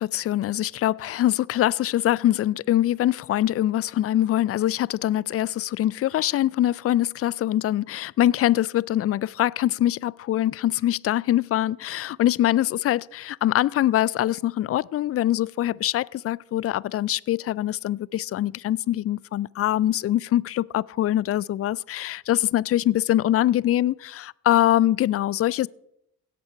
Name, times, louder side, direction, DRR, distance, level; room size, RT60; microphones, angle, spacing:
voice 1, 0.0-25.7, left 13 dB, 35° left, 0.4 m, -23 dB
16.5 x 8.0 x 4.5 m
hypercardioid pair, 45°, 44 cm